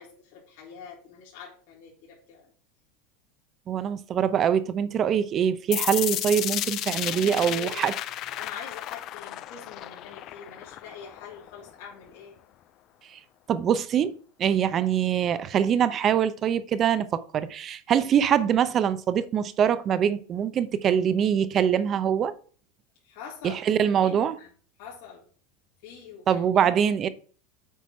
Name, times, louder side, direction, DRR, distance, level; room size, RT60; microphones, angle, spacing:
voice 1, 0.0-2.5 7.1-12.4 14.7-14.8 23.0-24.5 24.8-25.3 25.8-26.7, left 7 dB, 70° left, 3.2 m, -45 dB
voice 2, 3.7-7.9 13.5-14.1 14.4-22.3 23.7-24.3 26.3-27.1, right 8 dB, 35° right, 0.7 m, -24 dB
sound 1, 5.7-11.7, left 13 dB, 45° left, 0.5 m, -33 dB
8.2 x 4.6 x 4.5 m
supercardioid pair, 125°, 0 cm